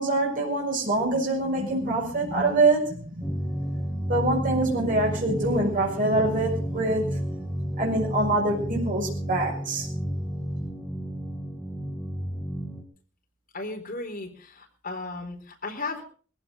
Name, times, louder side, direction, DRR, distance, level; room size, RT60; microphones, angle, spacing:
voice 1, 0.0-3.3 4.1-7.2 7.8-9.9, right 2 dB, 45° right, -2 dB, 6.4 m, -25 dB
sound 1, 3.2-12.8, equal, ahead, 2.6 m, -32 dB
voice 2, 13.5-16.0, left 3 dB, 45° left, 2 dB, 4.2 m, -35 dB
21.0 x 15.5 x 3.9 m, 0.41 s
head